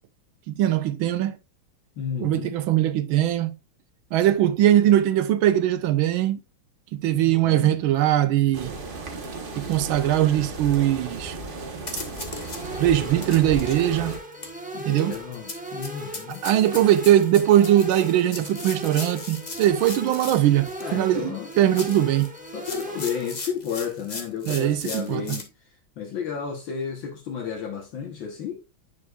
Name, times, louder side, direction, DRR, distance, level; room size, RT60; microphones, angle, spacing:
voice 1, 0.5-1.4 2.2-3.5 4.1-6.4 6.9-8.7 9.6-11.3 12.8-14.2 14.8-15.2 16.4-22.3 24.5-25.4, right 12 dB, 80° right, 1.4 m, -21 dB
voice 2, 2.0-2.6 7.1-7.8 14.7-16.4 20.8-21.5 22.5-25.5 26.0-28.6, left 7 dB, 65° left, 1.8 m, -32 dB
sound 1, 8.5-14.2, right 3 dB, 40° right, 0.8 m, -35 dB
sound 2, 11.4-11.5 11.8-12.6 13.1-20.9 21.5-25.5, left 3 dB, 40° left, 0.6 m, -38 dB
sound 3, 12.3-23.3, right 1 dB, 5° right, 0.7 m, -37 dB
9.7 x 5.5 x 2.3 m
omnidirectional pair, 2.3 m